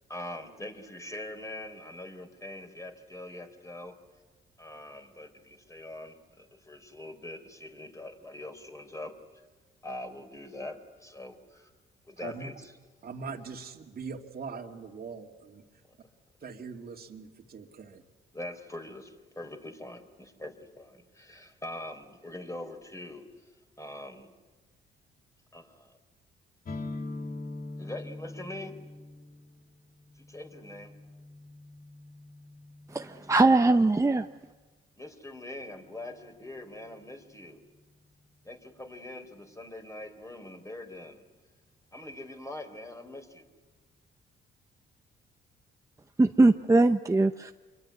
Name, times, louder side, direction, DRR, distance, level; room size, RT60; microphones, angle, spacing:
voice 1, 0.1-4.0 4.6-9.4 9.8-11.7 12.0-12.7 18.3-23.5 23.8-24.3 25.5-26.0 27.8-28.8 30.2-30.9 33.1-33.3 35.0-37.6 38.4-41.2 41.9-43.5, left 1 dB, 15° left, 5 dB, 4.1 m, -43 dB
voice 2, 12.2-12.5 13.0-15.6 16.4-18.0, right 5 dB, 50° right, 1 dB, 2.5 m, -41 dB
sound 1, 26.6-34.3, left 2 dB, 45° left, 3.1 m, -43 dB
voice 3, 32.9-34.3 46.2-47.5, right 2 dB, 15° right, 6 dB, 0.8 m, -21 dB
26.0 x 23.0 x 9.7 m, 1.3 s
cardioid pair, 90°, 20 cm